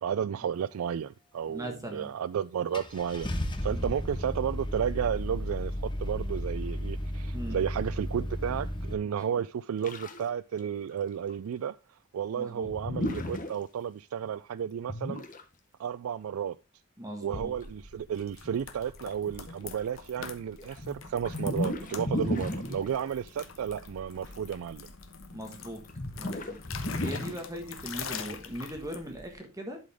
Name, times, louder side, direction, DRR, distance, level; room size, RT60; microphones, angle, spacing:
voice 1, 0.0-11.8 12.1-15.2 15.8-16.6 17.2-24.9, right 8 dB, 80° right, 0.3 m, -33 dB
voice 2, 1.5-2.1 3.7-3.8 7.3-7.6 9.1-9.3 12.3-12.7 17.0-17.5 22.0-22.2 25.3-25.8 26.2-26.6 27.0-29.8, equal, 15° right, 1.4 m, -39 dB
Car / Engine starting, 2.0-2.1 2.7-8.9, equal, 25° left, 1.1 m, -34 dB
sound 1, 9.8-10.3 10.6-10.7 10.9-11.0 11.3-11.4 12.6-13.5 14.9-15.4 17.6-17.7 18.4-18.6 19.1-19.7 20.2-23.0 25.3-25.4 25.9-27.3, left 1 dB, 40° left, 1.2 m, -34 dB
sound 2, 17.3-29.3, left 5 dB, 70° left, 1.1 m, -44 dB
11.5 x 5.1 x 3.5 m
head